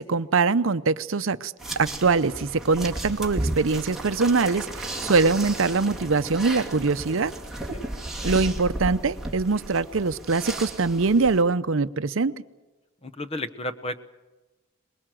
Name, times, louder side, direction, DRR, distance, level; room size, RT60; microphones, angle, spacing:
voice 1, 0.0-7.3 8.2-12.3, right 4 dB, 70° right, 13 dB, 0.7 m, -23 dB
sound 1, 1.6-11.4, right 1 dB, ahead, 2.2 m, -34 dB
voice 2, 7.5-7.9 13.0-14.0, left 1 dB, 30° left, 11 dB, 1.0 m, -33 dB
23.5 x 21.0 x 7.7 m, 1.1 s
head